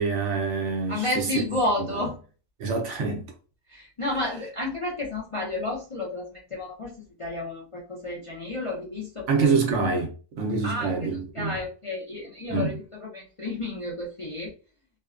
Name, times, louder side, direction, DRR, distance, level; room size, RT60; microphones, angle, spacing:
voice 1, 0.0-1.5 1.8-2.0 2.6-3.3 9.3-10.1 10.4-11.6 12.5-12.8, right 4 dB, 70° right, 0.9 m, -26 dB
voice 2, 0.9-2.2 3.7-6.9 7.2-9.6 10.6-14.5, left 2 dB, 40° left, 0.4 m, -31 dB
2.6 x 2.2 x 2.4 m
omnidirectional pair, 1.3 m